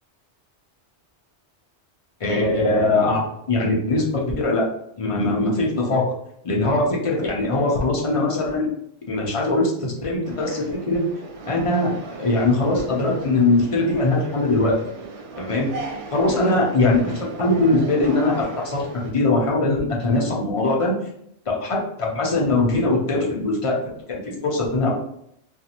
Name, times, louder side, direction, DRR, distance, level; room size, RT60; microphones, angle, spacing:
voice 1, 2.2-3.2 3.5-4.7 5.0-6.0 6.4-8.7 9.1-11.0 11.5-11.9 12.2-14.8 15.4-15.7 16.1-20.9 21.6-23.8 24.1-24.9, left 2 dB, 40° left, -2 dB, 0.5 m, -21 dB
sound 1, 10.2-19.1, right 3 dB, 85° right, 0.9 m, -36 dB
2.5 x 2.5 x 2.8 m, 0.74 s
omnidirectional pair, 1.2 m